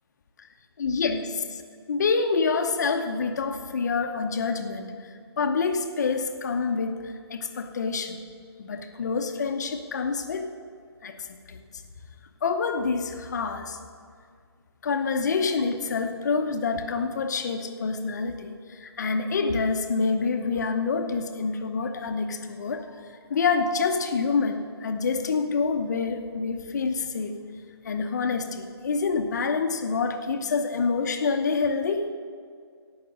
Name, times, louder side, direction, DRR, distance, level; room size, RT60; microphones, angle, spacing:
voice 1, 0.8-1.6 1.9-8.2 8.6-10.5 11.0-11.6 12.4-13.8 14.8-22.9 23.3-27.3 27.8-32.1, left 4 dB, 40° left, 6 dB, 0.9 m, -27 dB
17.5 x 5.9 x 6.4 m, 2.1 s
hypercardioid pair, 165°, 14 cm